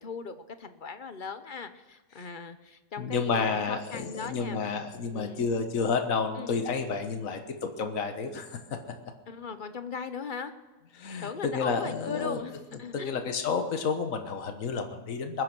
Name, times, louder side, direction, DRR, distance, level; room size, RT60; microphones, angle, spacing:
voice 1, 0.0-4.6 5.1-5.5 6.4-6.6 9.3-10.5 11.2-13.2, left 5 dB, 40° left, 10 dB, 1.0 m, -38 dB
voice 2, 3.0-7.4 7.8-8.8 10.9-12.4 12.9-15.4, left 5 dB, 70° left, 6 dB, 1.7 m, -30 dB
21.0 x 9.8 x 6.2 m, 1.2 s
omnidirectional pair, 1.5 m